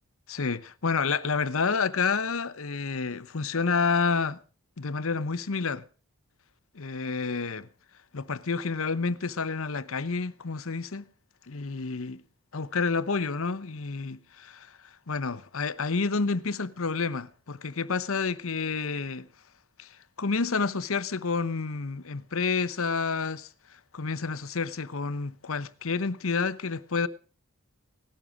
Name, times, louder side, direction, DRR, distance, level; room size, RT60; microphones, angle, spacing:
voice 1, 0.3-4.4 4.8-5.8 6.7-7.7 8.1-11.0 11.5-12.2 12.5-19.3 19.8-27.1, left 4 dB, 70° left, 0.9 m, -29 dB
18.0 x 12.5 x 5.0 m
head